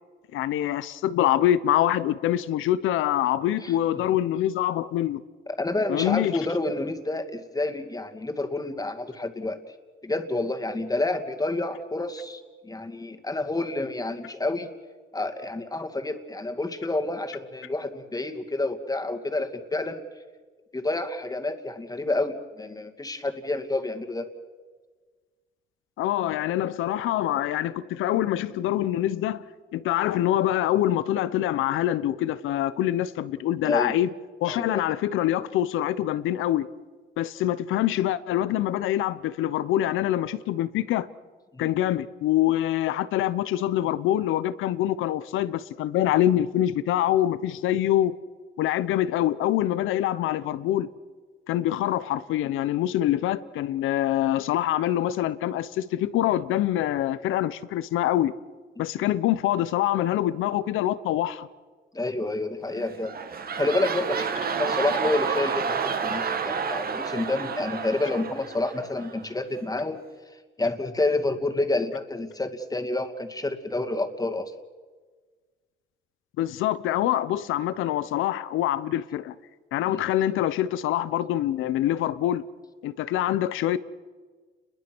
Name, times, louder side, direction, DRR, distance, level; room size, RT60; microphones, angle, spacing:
voice 1, 0.3-5.2 5.9-6.4 26.0-29.4 29.7-34.1 34.4-36.7 37.2-41.1 41.6-48.2 48.6-50.9 51.5-58.3 58.8-61.5 76.4-79.3 79.7-82.5 82.8-83.8, left 12 dB, 90° left, 1.0 m, -25 dB
voice 2, 5.6-9.6 10.0-14.7 15.1-20.0 20.7-24.3 33.6-34.0 34.5-34.9 41.5-41.7 61.9-63.1 63.5-70.0 70.6-74.5 79.9-80.0, left 2 dB, 20° left, 2.5 m, -29 dB
sound 1, 62.7-69.3 69.8-69.9, right 6 dB, 50° right, 1.8 m, -30 dB
30.0 x 22.0 x 6.2 m
cardioid pair, 90°, 20 cm